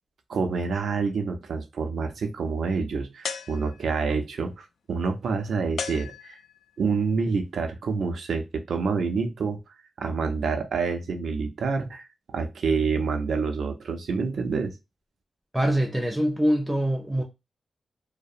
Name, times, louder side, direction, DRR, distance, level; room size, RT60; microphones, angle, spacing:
voice 1, 0.3-6.4 6.8-9.6 10.0-14.7, right 4 dB, 75° right, 0.5 m, -27 dB
sound 1, 3.2-4.1 5.8-6.8, left 6 dB, 80° left, 0.3 m, -36 dB
voice 2, 15.5-17.2, equal, 5° right, 0.4 m, -24 dB
2.7 x 2.1 x 2.4 m
wide cardioid pair, 120°, 0 cm